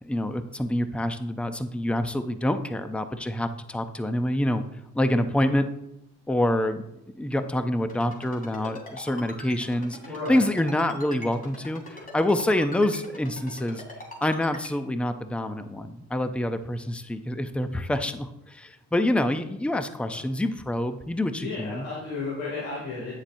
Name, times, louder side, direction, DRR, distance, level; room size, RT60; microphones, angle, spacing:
voice 1, 0.0-4.6 4.9-5.7 6.3-6.8 7.1-10.0 10.3-13.8 14.2-21.9, left 1 dB, 5° left, 9 dB, 0.5 m, -26 dB
Ringtone, 7.9-14.7, left 2 dB, 30° left, 2.9 m, -41 dB
voice 2, 10.0-10.5 20.1-20.2 21.4-23.1, left 3 dB, 80° left, -6 dB, 2.6 m, -33 dB
9.1 x 7.0 x 2.7 m, 0.84 s
cardioid pair, 90°, 30 cm